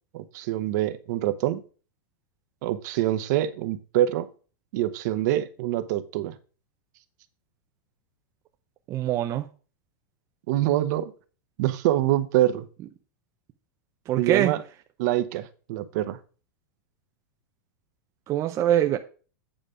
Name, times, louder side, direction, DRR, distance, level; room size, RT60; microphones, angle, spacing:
voice 1, 0.1-1.6 2.6-4.3 4.7-6.4 10.5-11.1 11.6-12.7 14.2-14.6 15.0-16.2, right 13 dB, 50° right, 0.9 m, -25 dB
voice 2, 8.9-9.5 14.1-14.5 18.3-19.0, right 12 dB, 25° right, 0.5 m, -23 dB
9.1 x 5.0 x 5.0 m
supercardioid pair, 155°, 12 cm